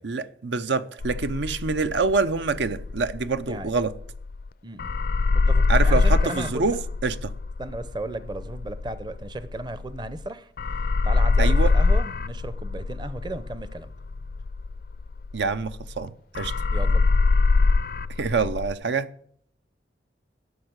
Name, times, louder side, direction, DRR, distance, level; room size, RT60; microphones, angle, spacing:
voice 1, 0.0-4.0 5.7-7.3 11.4-11.8 15.3-16.5 18.2-19.1, right 4 dB, 80° right, 0.7 m, -26 dB
sound 1, 1.0-4.5 4.8-10.3 10.6-16.0 16.3-18.7, left 3 dB, 55° left, 0.4 m, -23 dB
voice 2, 5.3-6.8 7.6-10.5 10.7-13.9 16.7-17.1, right 2 dB, 25° right, 0.6 m, -35 dB
11.5 x 6.6 x 7.9 m
head